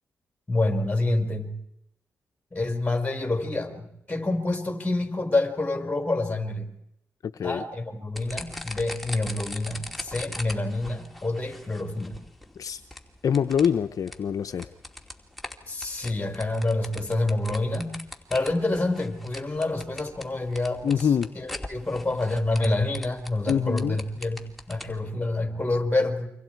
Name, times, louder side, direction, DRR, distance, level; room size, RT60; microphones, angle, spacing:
voice 1, 0.5-1.5 2.5-6.7 7.4-12.2 15.7-18.0 18.3-21.1 21.3-26.3, left 2 dB, 20° left, 4 dB, 4.9 m, -27 dB
voice 2, 7.2-7.6 12.6-12.8 13.2-14.7 20.8-21.3 23.5-24.0, left 7 dB, 65° left, 8 dB, 0.8 m, -25 dB
sound 1, 8.2-25.0, left 1 dB, ahead, 2.7 m, -41 dB
29.0 x 25.0 x 4.7 m, 0.82 s
supercardioid pair, 50°, 6 cm